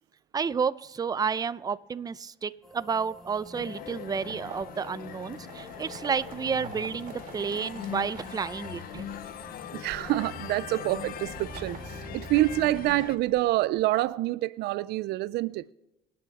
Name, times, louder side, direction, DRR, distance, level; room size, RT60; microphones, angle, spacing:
voice 1, 0.3-9.1, right 6 dB, 20° right, 0.5 m, -31 dB
sound 1, 2.6-12.1, left 1 dB, ahead, 1.6 m, -52 dB
bm carongravel, 3.0-13.8, right 5 dB, 50° right, 2.2 m, -47 dB
sound 2, 3.5-13.2, left 11 dB, 60° left, 0.7 m, -41 dB
voice 2, 9.7-15.6, right 16 dB, 75° right, 0.4 m, -27 dB
25.0 x 8.6 x 4.1 m
cardioid pair, 110°, 17 cm